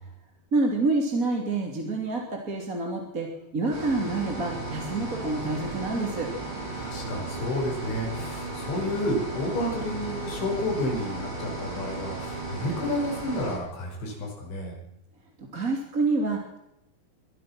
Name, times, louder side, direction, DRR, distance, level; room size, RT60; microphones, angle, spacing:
voice 1, 0.5-6.3 15.4-16.6, right 3 dB, 20° right, 1 dB, 2.7 m, -27 dB
sound 1, 3.7-13.6, right 2 dB, 85° right, 8.2 m, -35 dB
voice 2, 6.8-14.8, left 1 dB, 85° left, 0 dB, 8.3 m, -31 dB
24.5 x 19.5 x 6.2 m, 0.85 s
omnidirectional pair, 5.1 m